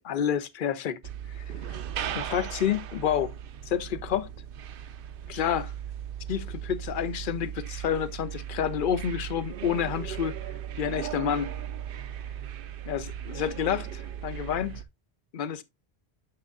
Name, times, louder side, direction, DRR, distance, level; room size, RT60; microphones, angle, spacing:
voice 1, 0.1-1.0 1.4-1.5 2.1-3.3 3.7-4.3 5.3-5.7 6.3-10.3 10.8-11.5 12.9-14.8 15.3-15.6, left 8 dB, 60° left, 0.7 m, -29 dB
sound 1, 1.0-14.8, right 10 dB, 65° right, 0.7 m, -37 dB
7.7 x 6.3 x 2.4 m
omnidirectional pair, 1.1 m